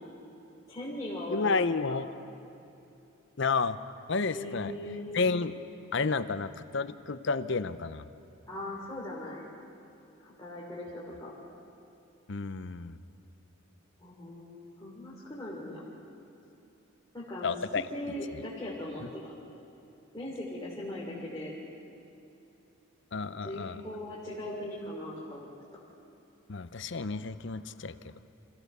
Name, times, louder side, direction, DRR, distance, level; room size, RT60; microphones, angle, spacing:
voice 1, 0.7-2.0 4.3-5.2 8.5-9.5 10.2-11.3 14.0-15.8 17.1-17.5 17.9-19.3 20.1-21.5 23.4-25.5, left 1 dB, 15° left, -7 dB, 3.1 m, -39 dB
voice 2, 1.3-2.1 3.4-3.8 4.1-4.7 5.1-5.6 5.9-8.0 12.3-13.0 17.4-17.8 23.1-23.8 26.5-28.1, left 4 dB, 55° left, 13 dB, 0.7 m, -31 dB
27.0 x 15.5 x 6.8 m, 2.7 s
head